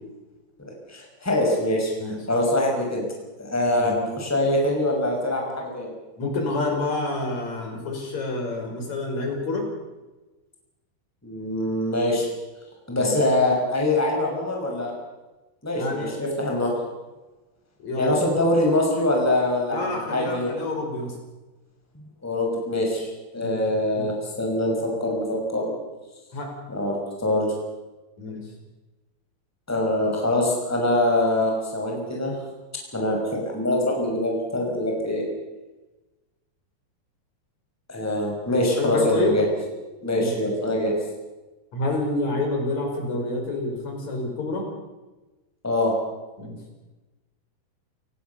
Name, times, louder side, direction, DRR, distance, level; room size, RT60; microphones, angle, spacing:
voice 1, 0.6-1.9 2.3-3.0 3.4-5.9 11.2-12.3 12.9-14.9 15.6-16.7 18.0-20.5 22.2-25.7 26.7-27.5 29.7-32.3 32.9-35.2 37.9-39.4 40.0-40.9 45.6-45.9, left 1 dB, 5° left, 0 dB, 5.7 m, -24 dB
voice 2, 6.2-9.7 13.0-13.2 15.7-16.2 17.8-18.2 19.7-21.2 23.4-23.6 23.9-24.1 26.3-26.5 28.2-28.5 38.8-39.4 40.2-40.4 41.7-44.7 46.4-46.6, left 2 dB, 45° left, 2 dB, 6.3 m, -28 dB
28.5 x 18.5 x 7.0 m, 1.1 s
omnidirectional pair, 4.7 m